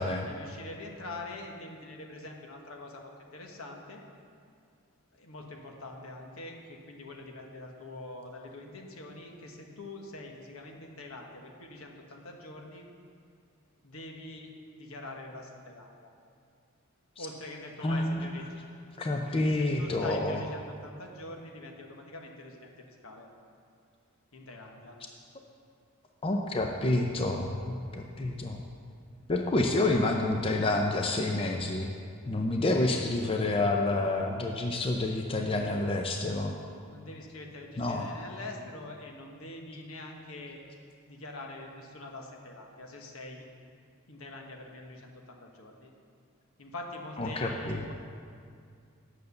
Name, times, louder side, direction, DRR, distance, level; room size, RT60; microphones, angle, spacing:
voice 1, 0.2-4.0 5.1-12.8 13.8-14.5 14.8-16.1 17.2-18.7 19.3-23.3 24.3-25.0 36.9-40.6 41.1-43.4 44.1-45.9 46.6-47.9, left 2 dB, 70° left, 2 dB, 1.2 m, -44 dB
voice 2, 17.8-18.3 19.0-20.4 26.2-28.6 29.3-31.9 32.3-36.5 37.8-38.1 47.2-47.8, left 2 dB, 25° left, 2 dB, 0.5 m, -28 dB
9.1 x 6.6 x 6.8 m, 2.3 s
head